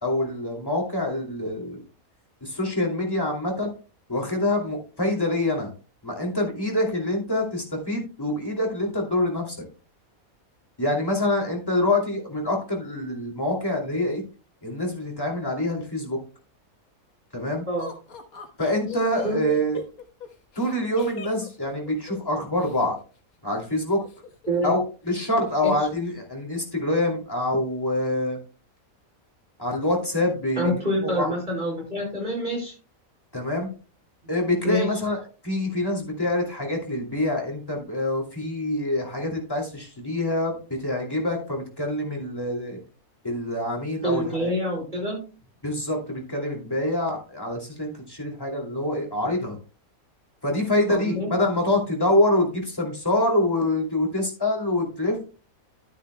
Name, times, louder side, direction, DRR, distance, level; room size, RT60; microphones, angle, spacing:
voice 1, 0.0-1.8 2.4-3.7 4.1-5.7 6.0-9.6 10.8-14.2 14.6-16.2 17.3-17.6 18.6-19.8 20.6-23.0 23.4-24.0 24.6-24.8 25.0-28.4 29.6-30.7 31.0-31.3 33.3-33.7 34.3-35.2 35.4-42.8 43.2-44.5 45.6-49.6 50.4-55.2, left 1 dB, 15° left, 0 dB, 2.6 m, -25 dB
Laughter, 17.8-22.8 23.9-24.7 25.0-25.1 25.5-25.9, left 6 dB, 90° left, 1.7 m, -41 dB
voice 2, 30.6-32.7 34.6-34.9 44.0-45.2 50.9-51.3, equal, 35° right, -2 dB, 4.9 m, -26 dB
12.0 x 9.5 x 2.2 m, 0.34 s
omnidirectional pair, 1.5 m